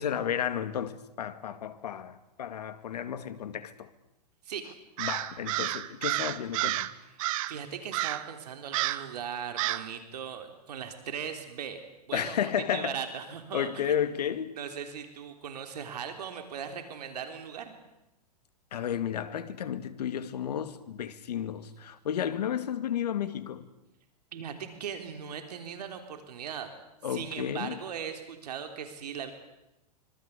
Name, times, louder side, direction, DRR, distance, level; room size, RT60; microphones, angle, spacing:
voice 1, 0.0-3.9 5.0-6.9 12.1-13.0 13.5-14.6 18.7-23.7 27.0-27.8, left 9 dB, 80° left, 2.4 m, -32 dB
Crow, 5.0-6.9 7.2-7.6 7.9-8.3 8.7-9.1 9.6-9.9, right 16 dB, 55° right, 1.5 m, -30 dB
voice 2, 7.2-14.0 14.6-17.7 24.3-26.7 27.1-29.3, right 7 dB, 75° right, 3.8 m, -39 dB
25.5 x 24.5 x 8.5 m
hypercardioid pair, 120°, 20 cm